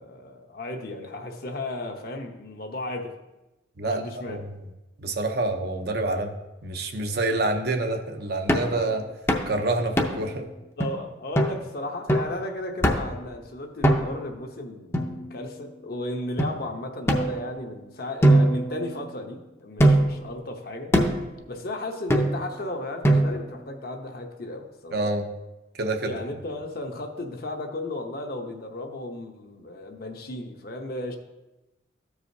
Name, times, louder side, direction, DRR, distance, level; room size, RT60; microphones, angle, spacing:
voice 1, 0.0-3.1 3.8-4.4 10.8-20.9 21.5-25.0 26.0-31.2, left 2 dB, 55° left, 3 dB, 0.8 m, -35 dB
voice 2, 3.8-4.5 5.0-6.3 6.6-9.1 9.5-10.5 24.9-25.3 25.8-26.1, right 2 dB, 60° right, 5 dB, 0.7 m, -27 dB
sound 1, 8.5-8.8 9.3-9.5 10.0-10.3 10.8-10.9 11.4-11.6 12.1-12.4 12.8-13.2 13.8-14.3 14.9-15.7 16.4-16.5 17.1-17.8 18.2-19.3 19.8-20.2 20.9-21.3 22.1-22.6 23.0-23.6, right 1 dB, 15° left, 0.6 m, -22 dB
13.5 x 4.9 x 2.7 m, 1.0 s
head